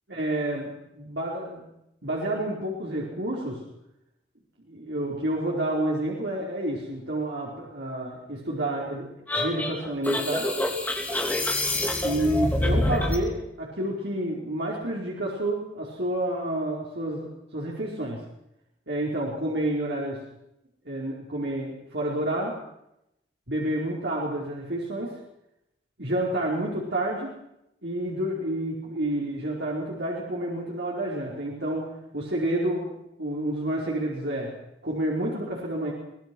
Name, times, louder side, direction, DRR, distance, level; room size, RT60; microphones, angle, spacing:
voice 1, 0.1-1.7 2.0-3.6 4.7-10.5 11.7-18.2 18.9-20.2 20.8-22.6 23.5-25.1 26.0-27.3 27.8-32.9 33.2-34.5 34.8-35.9, right 1 dB, 70° right, -3 dB, 4.9 m, -29 dB
sound 1, 9.3-13.2, left 1 dB, 10° left, 3.1 m, -26 dB
24.5 x 19.0 x 6.3 m, 0.83 s
head